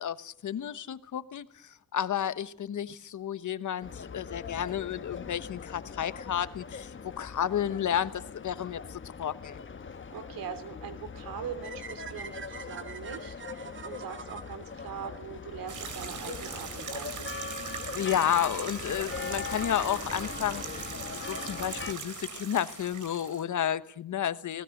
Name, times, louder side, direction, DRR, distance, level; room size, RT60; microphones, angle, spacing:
voice 1, 0.0-9.6 17.9-24.6, left 10 dB, 60° left, 1.2 m, -32 dB
sound 1, 3.8-21.9, left 5 dB, 35° left, 1.4 m, -41 dB
voice 2, 10.1-17.3, right 8 dB, 80° right, 3.3 m, -42 dB
sound 2, 11.6-15.8, right 6 dB, 35° right, 1.1 m, -45 dB
sound 3, 15.7-23.4, right 5 dB, 60° right, 4.1 m, -40 dB
28.5 x 19.5 x 6.6 m
cardioid pair, 90°, 34 cm